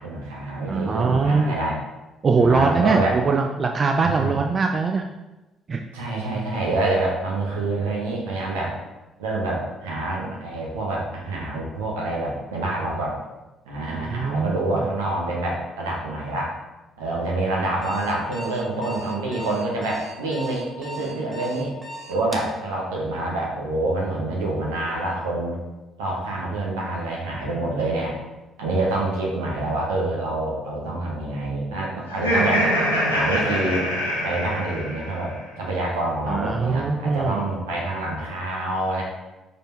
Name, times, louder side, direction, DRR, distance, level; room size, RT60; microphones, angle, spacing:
voice 1, 0.0-1.8 2.4-3.2 4.0-4.3 5.9-8.8 9.2-13.2 13.7-16.5 17.0-21.7 22.1-25.6 26.0-28.2 28.6-32.7 33.1-33.9 34.2-39.0, right 2 dB, 75° right, -3 dB, 1.3 m, -27 dB
voice 2, 0.7-1.6 2.2-5.0 5.7-5.8 14.1-14.9 36.3-37.4, right 4 dB, 40° right, 4 dB, 0.4 m, -22 dB
Alarm, 17.8-22.5, right 1 dB, 10° right, 1.2 m, -37 dB
Laughter, 32.1-35.3, equal, 85° left, 0.9 m, -24 dB
5.4 x 4.4 x 4.3 m, 1.1 s
figure-of-eight pair, 45°, 0 cm